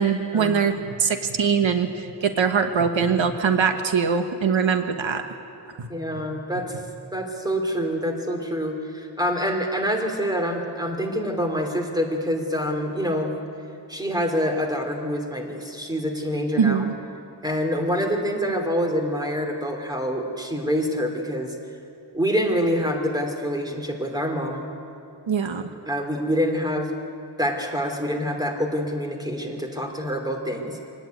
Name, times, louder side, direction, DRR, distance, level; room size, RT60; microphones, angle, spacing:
voice 1, 0.0-5.2 5.8-5.9 16.6-16.9 25.3-25.6, right 6 dB, 80° right, 7 dB, 1.5 m, -22 dB
voice 2, 5.9-6.8 7.1-13.4 13.9-16.8 17.4-21.5 22.1-24.7 25.9-26.9 27.4-30.9, equal, 10° right, 3 dB, 3.0 m, -26 dB
25.0 x 18.5 x 9.5 m, 2.6 s
wide cardioid pair, 150°, 45 cm